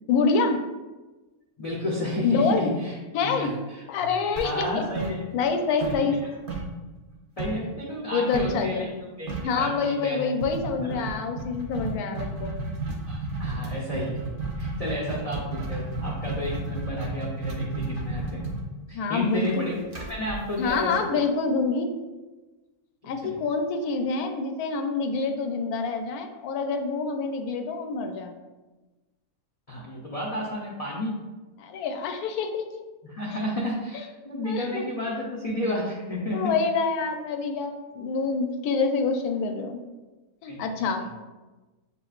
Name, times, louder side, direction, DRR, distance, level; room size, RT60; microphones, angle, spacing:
voice 1, 0.1-0.6 2.2-2.7 3.1-3.5 3.9-4.8 5.3-6.2 8.1-8.9 9.4-12.5 18.9-19.7 20.6-21.9 23.0-28.4 31.6-32.8 34.4-34.8 36.3-39.8 40.4-41.1, left 4 dB, 80° left, 5 dB, 1.1 m, -26 dB
voice 2, 1.6-4.1 4.4-5.3 5.8-6.2 7.4-8.9 9.2-10.3 10.6-11.0 13.1-14.3 14.6-18.5 18.9-21.0 23.0-23.4 29.7-31.1 33.0-36.5 40.5-40.8, left 1 dB, 50° left, -4 dB, 0.4 m, -32 dB
sound 1, 4.4-5.5 5.8-7.7 8.3-8.6 8.9-9.0 9.3-9.6 10.4-21.2, right 3 dB, 45° right, 0.7 m, -33 dB
6.9 x 2.6 x 2.4 m, 1.2 s
omnidirectional pair, 1.6 m